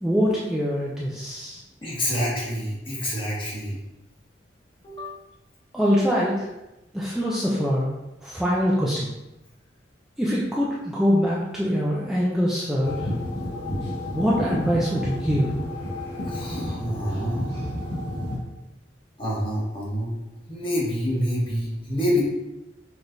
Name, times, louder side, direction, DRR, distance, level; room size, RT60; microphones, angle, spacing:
voice 1, 0.0-1.6 5.7-6.5 6.9-7.9 8.2-9.1 10.2-13.1 14.1-15.5, equal, 5° right, -6 dB, 0.5 m, -23 dB
voice 2, 1.8-3.8 4.8-5.2 16.2-17.5 19.2-20.1 20.5-22.2, equal, 30° left, -5 dB, 1.3 m, -27 dB
sound 1, 12.8-18.4, left 1 dB, 70° left, 1.6 m, -30 dB
6.0 x 3.2 x 2.6 m, 0.98 s
head